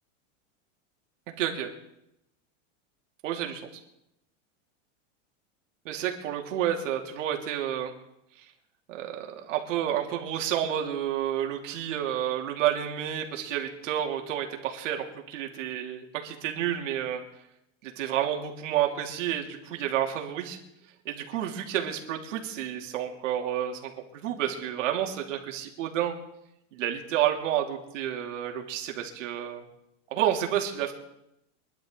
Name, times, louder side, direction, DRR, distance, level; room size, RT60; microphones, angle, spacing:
voice 1, 1.3-1.7 3.2-3.7 5.8-7.9 8.9-17.2 17.8-20.6 21.0-26.2 26.7-29.6 30.1-30.9, right 10 dB, 75° right, 2 dB, 2.9 m, -30 dB
24.5 x 11.5 x 3.9 m, 0.81 s
supercardioid pair, 165°, 38 cm